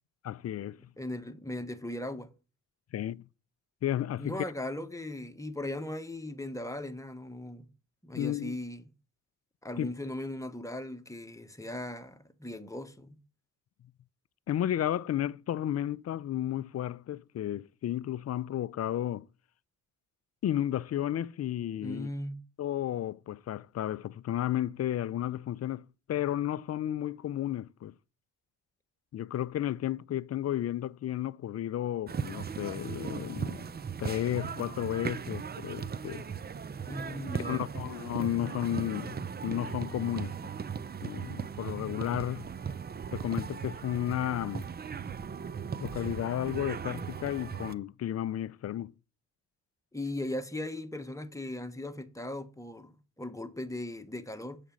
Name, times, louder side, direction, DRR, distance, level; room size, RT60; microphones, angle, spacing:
voice 1, 0.2-0.8 2.9-3.2 3.8-4.4 8.1-8.5 9.8-9.9 14.5-19.3 20.4-22.1 22.6-27.9 29.1-33.7 34.0-36.2 37.4-40.5 41.0-42.5 43.1-44.7 45.8-48.9, left 12 dB, 40° left, 0.4 m, -33 dB
voice 2, 1.0-2.3 4.2-7.7 8.0-8.9 9.6-13.2 21.8-22.4 36.8-37.7 49.9-52.9 53.2-54.6, left 1 dB, 10° left, 1.2 m, -38 dB
sound 1, 32.1-47.7, right 6 dB, 25° right, 0.5 m, -38 dB
7.3 x 5.1 x 7.1 m
supercardioid pair, 55°, 39 cm